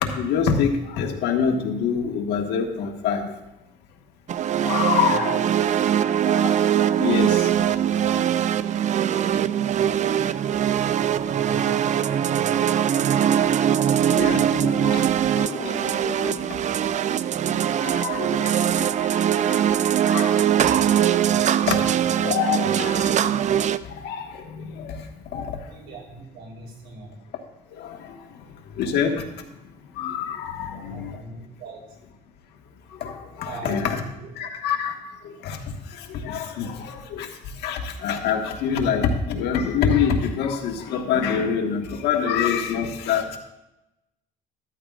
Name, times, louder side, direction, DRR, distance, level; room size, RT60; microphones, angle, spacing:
voice 1, 0.0-3.3 4.6-5.4 6.1-7.6 8.0-8.1 14.1-16.6 17.8-18.9 19.5-19.6 20.1-20.3 20.9-21.1 21.7-21.8 22.1-23.3 23.8-25.5 27.8-28.1 28.8-29.2 30.0-31.2 33.0-34.0 34.4-34.9 35.2-35.6 36.0-37.3 37.6-43.4, left 7 dB, 80° left, 2 dB, 1.6 m, -26 dB
sound 1, 4.3-23.8, right 9 dB, 45° right, 0.5 m, -22 dB
voice 2, 5.0-5.5 5.8-6.0 8.8-9.4 11.0-13.3 25.6-27.3 30.7-32.0 33.3-34.3, right 3 dB, 70° right, -2 dB, 3.8 m, -41 dB
13.5 x 13.0 x 2.5 m, 0.92 s
cardioid pair, 110°, 17 cm